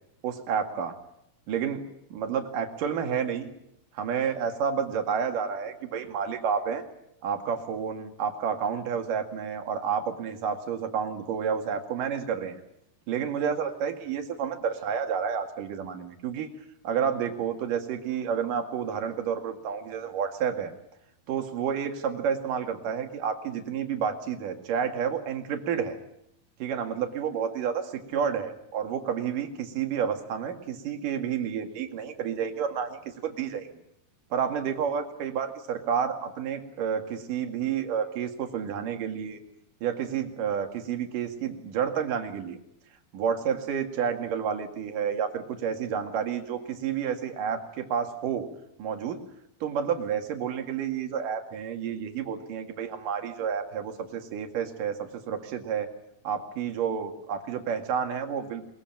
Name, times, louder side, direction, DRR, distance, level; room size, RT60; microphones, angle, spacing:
voice 1, 0.2-0.9 1.5-1.8 2.1-3.5 3.9-6.8 7.2-12.6 13.1-16.5 16.8-20.7 21.3-26.0 26.6-33.7 34.3-39.4 39.8-42.6 43.1-48.5 48.8-49.2 49.6-55.9 56.2-58.7, right 7 dB, 65° right, 5 dB, 3.6 m, -30 dB
22.0 x 21.0 x 9.2 m, 0.78 s
omnidirectional pair, 4.2 m